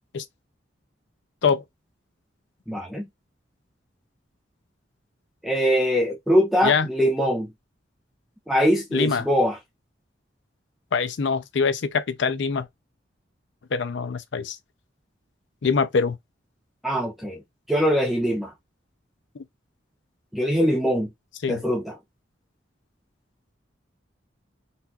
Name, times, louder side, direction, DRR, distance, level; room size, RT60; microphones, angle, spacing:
voice 1, 2.7-3.1 5.4-7.5 8.5-9.6 16.8-17.4 17.7-18.5 20.3-21.1 21.5-21.9, equal, ahead, 0.5 m, -22 dB
voice 2, 8.9-9.3 10.9-12.7 13.7-14.6 15.6-16.2 21.4-21.6, left 5 dB, 70° left, 0.5 m, -24 dB
4.0 x 2.4 x 2.3 m
head